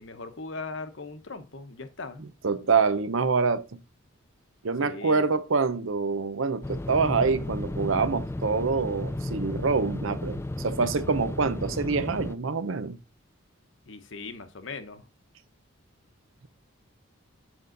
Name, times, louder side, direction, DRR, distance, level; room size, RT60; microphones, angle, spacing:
voice 1, 0.0-2.2 4.8-5.3 13.9-15.1, left 3 dB, 60° left, 1.0 m, -39 dB
voice 2, 2.2-3.8 4.6-13.0, right 4 dB, 70° right, 0.7 m, -26 dB
sound 1, 6.6-12.3, left 1 dB, 10° left, 0.3 m, -34 dB
7.9 x 5.4 x 3.9 m
head